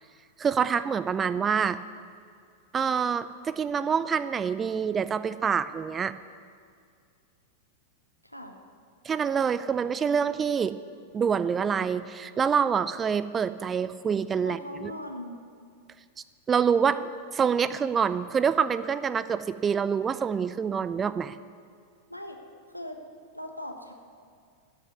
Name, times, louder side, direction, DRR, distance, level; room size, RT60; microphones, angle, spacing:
voice 1, 0.4-1.8 2.7-6.1 9.0-10.8 11.1-14.9 16.5-21.4, right 7 dB, 20° right, 15 dB, 0.5 m, -26 dB
voice 2, 8.2-8.6 14.4-15.4 22.1-22.4 22.7-23.0 23.3-23.9, left 1 dB, 90° left, 4 dB, 1.2 m, -39 dB
14.5 x 6.3 x 9.3 m, 2.2 s
figure-of-eight pair, 90°, 0 cm